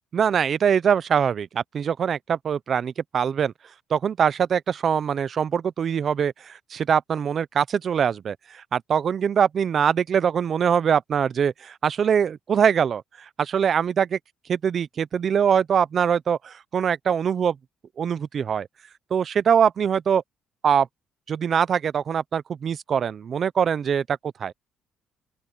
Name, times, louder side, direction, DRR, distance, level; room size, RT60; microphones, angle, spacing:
voice 1, 0.1-3.5 3.9-13.0 13.4-14.2 14.5-17.6 18.0-18.7 19.1-20.2 20.6-20.9 21.3-24.0 24.4-24.5, right 7 dB, 45° right, 0.5 m, -23 dB
open air
cardioid pair, 145°, 0 cm